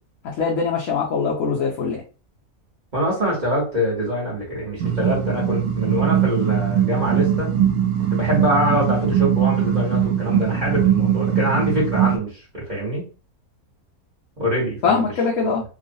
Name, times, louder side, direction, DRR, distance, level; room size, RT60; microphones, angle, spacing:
voice 1, 0.4-2.0 14.8-15.6, left 5 dB, 70° left, -3 dB, 1.1 m, -22 dB
voice 2, 2.9-7.5 8.1-13.1 14.4-15.1, equal, 35° right, -6 dB, 1.2 m, -24 dB
sound 1, 4.8-12.2, right 9 dB, 85° right, 1.1 m, -21 dB
3.0 x 2.3 x 2.6 m, 0.35 s
omnidirectional pair, 1.5 m